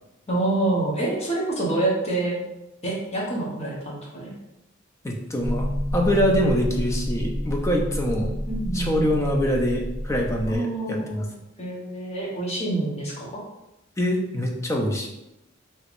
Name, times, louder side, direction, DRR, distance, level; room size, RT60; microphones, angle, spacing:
voice 1, 0.3-2.4 2.8-4.3 8.5-9.1 10.5-11.3 11.6-13.4, right 2 dB, 30° left, -4 dB, 0.9 m, -27 dB
voice 2, 5.0-8.3 8.7-11.3 14.0-15.1, equal, 15° left, 0 dB, 0.4 m, -24 dB
sound 1, 5.4-10.6, equal, 10° right, 0.9 m, -29 dB
3.3 x 2.9 x 2.5 m, 0.92 s
head